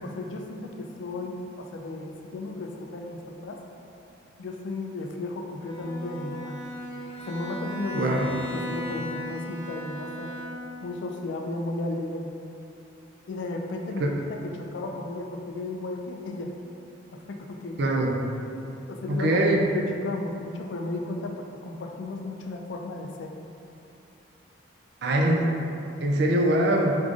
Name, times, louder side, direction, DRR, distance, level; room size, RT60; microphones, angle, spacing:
voice 1, 0.0-3.6 4.4-6.6 7.2-8.1 8.5-10.3 10.8-12.3 13.3-14.1 14.4-16.5 17.1-17.8 18.9-23.3, left 2 dB, 65° left, 2 dB, 0.3 m, -34 dB
Bowed string instrument, 5.6-10.9, left 1 dB, 10° left, 0.8 m, -36 dB
voice 2, 7.9-8.3 14.0-14.1 17.8-18.1 19.1-19.6 25.0-25.5 26.0-27.0, right 1 dB, 55° right, 1 dB, 0.4 m, -22 dB
4.7 x 2.5 x 2.5 m, 2.6 s
head